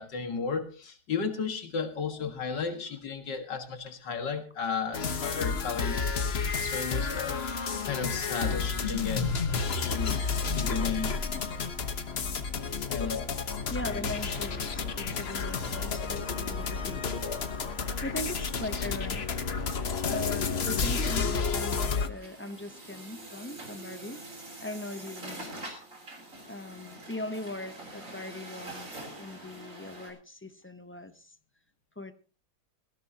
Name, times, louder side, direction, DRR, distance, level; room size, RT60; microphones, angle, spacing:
voice 1, 0.0-6.0 6.4-9.3 9.7-11.2 12.9-13.4, left 5 dB, 90° left, 6 dB, 2.4 m, -34 dB
sound 1, 4.9-22.1, left 5 dB, 40° left, 1.2 m, -31 dB
voice 2, 13.7-17.1 18.0-19.4 20.1-24.2 24.6-25.6 26.5-28.9 29.2-31.3 32.0-32.1, left 1 dB, 20° left, 9 dB, 0.3 m, -40 dB
Truck, 22.1-30.1, right 2 dB, 45° right, 4.1 m, -44 dB
18.5 x 15.5 x 2.9 m, 0.36 s
omnidirectional pair, 1.8 m